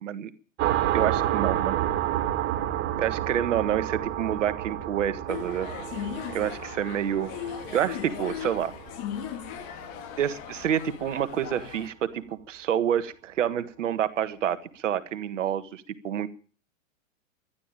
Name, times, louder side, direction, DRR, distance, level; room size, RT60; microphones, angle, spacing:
sound 1, 0.6-9.9, right 12 dB, 25° right, 1.3 m, -30 dB
voice 1, 0.9-1.8 3.0-5.7 6.3-7.3 7.7-8.7 10.2-16.3, right 9 dB, 65° right, 12 dB, 1.6 m, -28 dB
sound 2, 5.3-11.9, left 9 dB, 35° left, 2.0 m, -38 dB
12.5 x 12.0 x 8.8 m, 0.40 s
hypercardioid pair, 130°, 39 cm